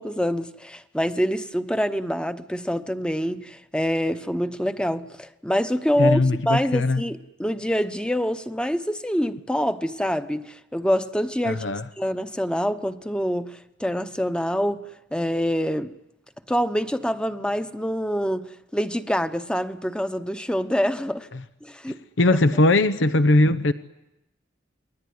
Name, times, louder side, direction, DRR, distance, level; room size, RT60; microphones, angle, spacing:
voice 1, 0.0-6.2 6.5-11.6 12.0-14.8 15.1-15.9 16.5-21.3 21.6-22.0, equal, 5° left, 0.9 m, -26 dB
voice 2, 6.0-7.0 11.4-11.8 21.9-23.7, left 2 dB, 90° left, 0.9 m, -20 dB
28.5 x 21.0 x 9.5 m
head